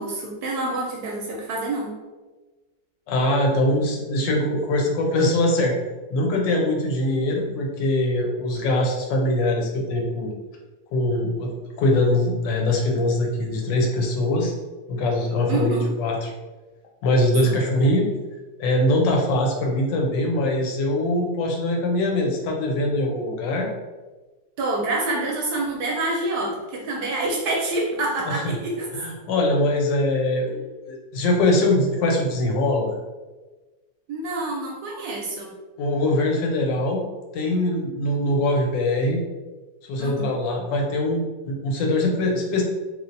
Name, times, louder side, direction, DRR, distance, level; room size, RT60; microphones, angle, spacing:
voice 1, 0.0-1.9 15.5-15.9 17.4-17.6 24.6-28.9 34.1-35.5 40.0-40.3, right 2 dB, 70° right, -1 dB, 1.0 m, -27 dB
voice 2, 3.1-5.7 6.1-10.3 10.9-11.5 11.8-14.5 14.9-16.3 17.0-18.1 18.6-23.7 28.3-28.5 28.9-30.6 30.9-32.9 35.8-37.0 37.3-39.2 39.8-42.6, left 1 dB, 80° left, 0 dB, 1.2 m, -22 dB
3.1 x 2.7 x 2.6 m, 1.2 s
omnidirectional pair, 2.0 m